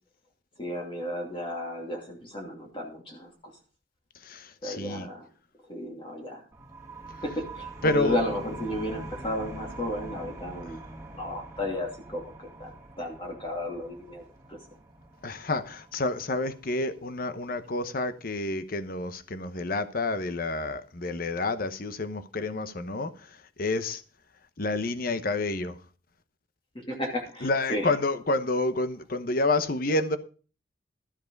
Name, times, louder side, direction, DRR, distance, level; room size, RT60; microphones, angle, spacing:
voice 1, 0.6-3.5 4.6-5.3 5.7-6.4 7.2-14.2 14.5-14.6 26.7-28.0, left 1 dB, 30° left, 2.7 m, -33 dB
voice 2, 4.2-5.1 7.8-8.2 15.2-24.0 24.6-25.8 27.4-30.2, left 2 dB, 55° left, 1.0 m, -29 dB
sound 1, 6.5-17.9, right 2 dB, 15° right, 2.0 m, -44 dB
13.0 x 7.5 x 5.3 m
head